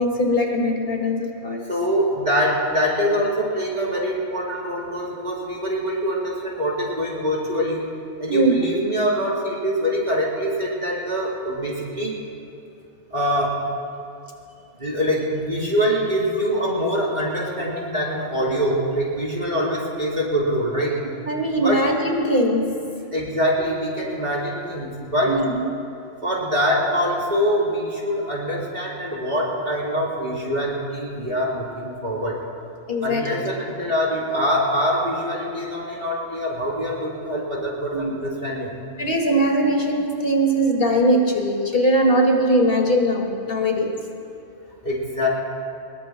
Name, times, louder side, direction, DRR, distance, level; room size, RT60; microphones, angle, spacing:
voice 1, 0.0-1.6 8.3-8.5 21.3-22.7 25.3-25.6 32.9-33.3 37.9-38.1 39.0-44.0, equal, 50° left, 0 dB, 2.2 m, -20 dB
voice 2, 1.7-7.9 8.2-12.2 13.1-13.6 14.8-21.0 21.6-21.9 23.1-25.4 26.2-32.4 33.0-38.7 44.8-45.3, equal, 35° right, -5 dB, 3.7 m, -24 dB
24.5 x 21.5 x 2.2 m, 2.6 s
omnidirectional pair, 1.2 m